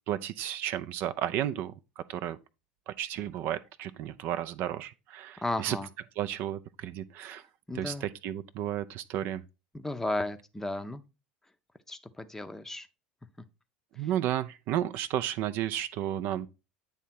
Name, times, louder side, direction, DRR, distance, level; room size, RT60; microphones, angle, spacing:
voice 1, 0.1-2.4 2.9-5.8 6.2-7.5 7.7-9.4 14.0-16.5, right 11 dB, 50° right, 0.4 m, -33 dB
voice 2, 5.4-5.9 7.7-8.1 9.7-11.0 11.9-12.9, left 2 dB, 10° left, 0.6 m, -34 dB
9.0 x 3.6 x 4.2 m
figure-of-eight pair, 70°, 4 cm